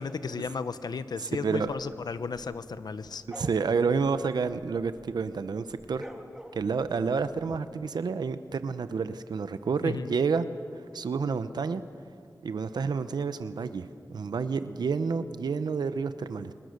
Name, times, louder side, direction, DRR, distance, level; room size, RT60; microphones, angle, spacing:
voice 1, 0.0-3.2 7.5-7.6 9.8-10.1, left 5 dB, 80° left, 13 dB, 0.9 m, -34 dB
voice 2, 1.2-1.7 3.3-6.1 6.5-10.4 10.9-11.8 12.4-16.5, right 5 dB, 85° right, 12 dB, 0.8 m, -29 dB
sound 1, 1.9-5.2 5.5-7.5, equal, 5° right, 2.5 m, -48 dB
30.0 x 20.5 x 6.7 m, 2.3 s
wide cardioid pair, 70°, 7 cm